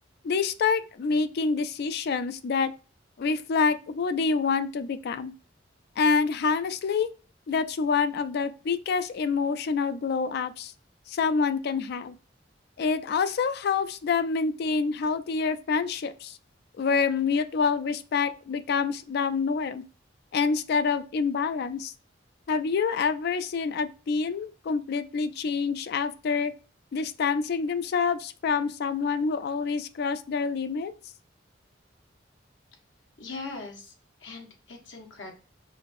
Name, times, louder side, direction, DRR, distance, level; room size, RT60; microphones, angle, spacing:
voice 1, 0.2-2.7 3.2-5.3 6.0-7.1 7.5-10.7 11.1-12.1 12.8-16.4 16.8-19.8 20.3-21.9 22.5-26.5 26.9-30.9, left 5 dB, 55° left, 11 dB, 0.3 m, -27 dB
voice 2, 33.2-33.9 34.2-35.3, left 3 dB, 75° left, 2 dB, 1.2 m, -40 dB
5.0 x 2.4 x 2.5 m, 0.35 s
head